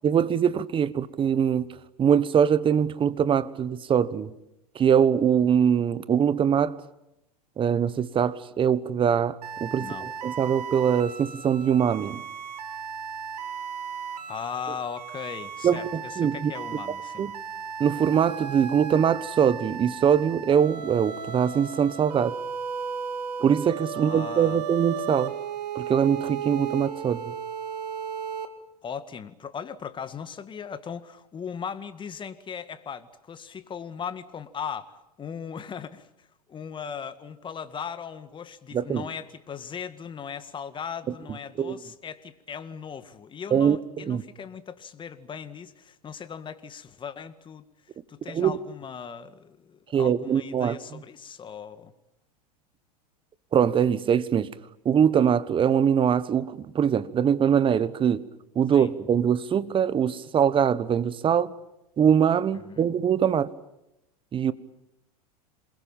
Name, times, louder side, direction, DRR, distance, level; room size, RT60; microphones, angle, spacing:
voice 1, 0.0-1.7 2.0-4.3 4.7-6.8 7.6-12.2 15.6-16.5 17.2-17.3 17.8-22.4 23.4-25.3 25.7-27.2 38.7-39.0 41.1-41.2 41.6-41.8 43.5-43.8 44.0-44.2 48.3-48.6 49.9-51.0 53.5-54.5 54.8-58.2 58.5-61.5 62.0-63.5 64.3-64.5, right 8 dB, 25° right, 1.3 m, -23 dB
sound 1, 9.4-28.5, right 7 dB, 80° right, 2.3 m, -35 dB
voice 2, 14.3-17.3 23.9-24.6 28.8-47.7 48.1-51.9 58.7-58.9 62.5-62.9, left 7 dB, 25° left, 2.0 m, -38 dB
27.5 x 21.5 x 9.0 m
hypercardioid pair, 105°, 20 cm